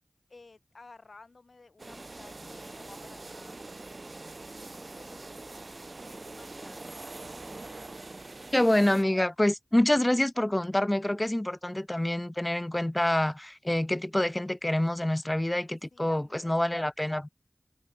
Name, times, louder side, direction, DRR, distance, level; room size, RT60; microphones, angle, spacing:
voice 1, 0.3-4.1 4.6-6.8 15.9-16.6, left 3 dB, 75° left, 7.9 m, -54 dB
sound 1, 1.8-9.0, right 2 dB, 55° right, 1.3 m, -44 dB
voice 2, 8.5-17.3, left 1 dB, 20° left, 1.0 m, -26 dB
wide cardioid pair, 60°, 0 cm